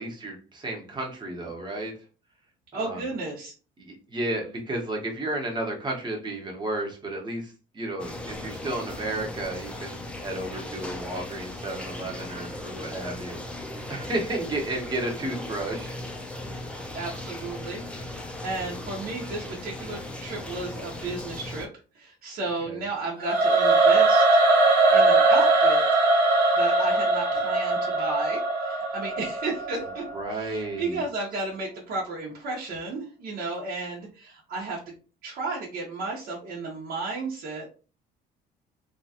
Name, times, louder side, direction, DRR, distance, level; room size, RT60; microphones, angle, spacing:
voice 1, 0.0-1.9 2.7-3.0 3.8-13.4 13.9-16.0 22.6-22.8 30.1-31.0, right 2 dB, 25° right, 1 dB, 1.0 m, -32 dB
voice 2, 2.7-3.5 16.9-21.7 21.9-24.4 24.9-26.0 26.5-30.0 30.3-34.9 35.2-37.7, right 3 dB, 60° right, -3 dB, 0.9 m, -33 dB
sound 1, 8.0-21.7, left 1 dB, 5° left, 0.5 m, -37 dB
Singing / Musical instrument, 23.2-30.3, right 2 dB, 90° right, 0.9 m, -21 dB
2.9 x 2.3 x 2.8 m, 0.36 s
cardioid pair, 110°, 17 cm